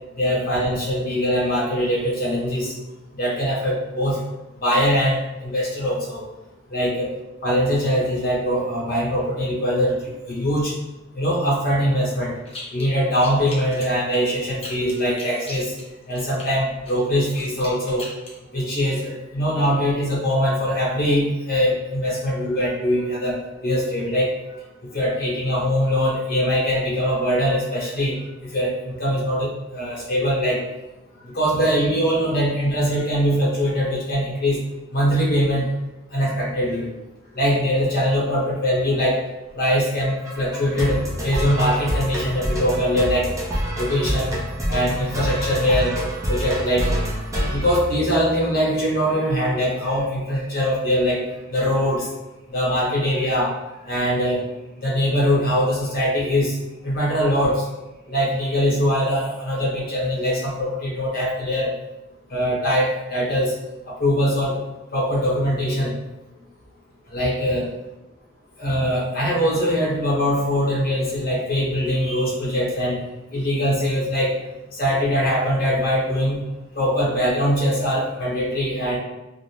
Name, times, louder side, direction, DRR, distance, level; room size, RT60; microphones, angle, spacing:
voice 1, 0.2-2.7 3.2-4.2 4.6-6.2 6.7-7.1 7.4-10.7 11.1-12.4 12.7-15.7 16.1-18.1 18.5-23.4 23.6-24.3 24.9-28.2 28.4-30.6 31.2-34.6 34.9-35.7 36.1-36.9 37.3-39.2 39.5-43.3 43.8-44.4 44.7-45.9 46.3-46.9 47.5-51.2 51.5-52.1 52.5-53.5 53.9-54.4 54.8-56.6 56.8-57.6 58.1-61.7 62.3-63.5 63.9-64.5 64.9-65.9 67.1-67.6 68.6-73.0 73.3-74.3 74.8-76.4 76.7-79.0, equal, 45° left, -6 dB, 0.9 m, -22 dB
sound 1, 12.5-12.9 13.1-16.5 16.9-18.4, left 2 dB, 30° left, 0.6 m, -38 dB
sound 2, 40.0-48.6, equal, 15° right, 0.5 m, -27 dB
2.5 x 2.0 x 3.0 m, 1.0 s
head